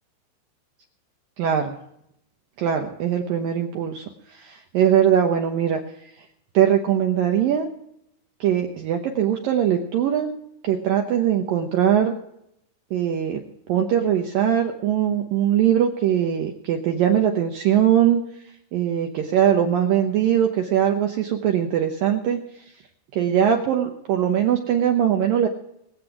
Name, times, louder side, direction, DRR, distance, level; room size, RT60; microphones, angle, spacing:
voice 1, 1.4-1.8 2.6-5.8 6.5-7.7 8.4-10.3 10.6-12.1 12.9-13.4 13.7-18.2 18.7-22.4 23.1-25.5, right 9 dB, 80° right, 3 dB, 2.1 m, -21 dB
23.5 x 8.1 x 4.7 m, 0.76 s
omnidirectional pair, 5.4 m